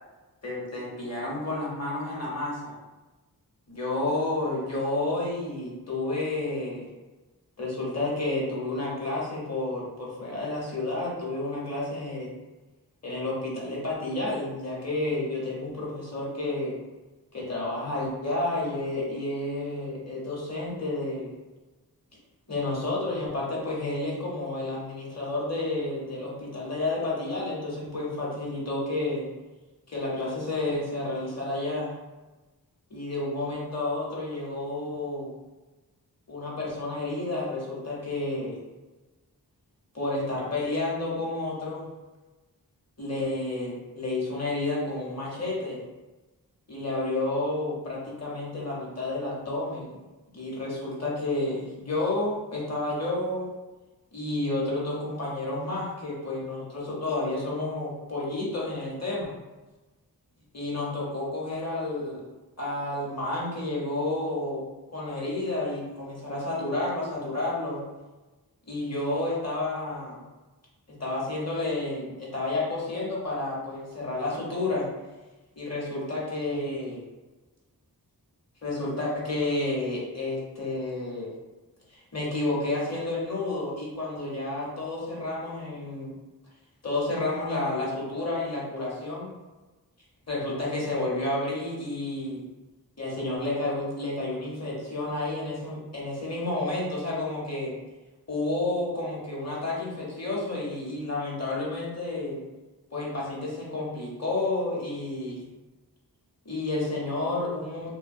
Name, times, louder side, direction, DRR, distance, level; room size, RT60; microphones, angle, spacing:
voice 1, 0.4-2.7 3.7-6.9 7.6-12.3 13.0-16.8 17.3-21.3 22.5-29.3 29.9-31.9 32.9-35.3 36.3-38.6 39.9-41.9 43.0-45.8 46.7-49.9 50.3-53.6 54.1-59.4 60.5-62.3 62.6-64.6 64.9-67.8 68.7-70.2 70.9-74.9 75.6-77.0 78.6-81.3 81.9-86.1 86.8-89.3 90.3-92.5 93.0-97.7 98.3-102.4 102.9-105.4 106.4-108.0, left 2 dB, 40° left, -5 dB, 0.9 m, -30 dB
2.7 x 2.2 x 2.5 m, 1.2 s
wide cardioid pair, 55°, 39 cm